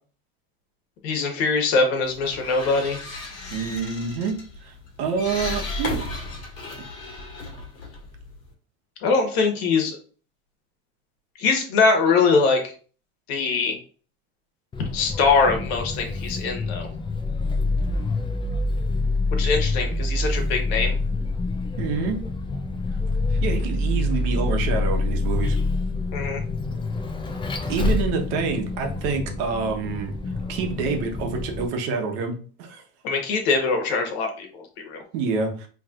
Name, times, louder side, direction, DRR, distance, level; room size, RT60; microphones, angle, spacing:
voice 1, 1.0-3.0 9.0-10.0 11.4-12.7 13.3-13.8 14.9-16.9 19.3-21.0 26.1-26.4 33.0-35.0, left 4 dB, 70° left, 3 dB, 1.4 m, -22 dB
sound 1, 2.0-8.5, left 2 dB, 45° left, 1.7 m, -35 dB
voice 2, 3.5-4.7 5.0-6.0 21.8-22.2 23.3-25.6 27.7-30.1 30.5-32.8 35.1-35.7, right 5 dB, 65° right, 3 dB, 1.1 m, -27 dB
Vehicle, 14.7-31.7, left 2 dB, 15° left, 0.5 m, -26 dB
4.3 x 3.2 x 2.5 m, 0.39 s
supercardioid pair, 135°, 32 cm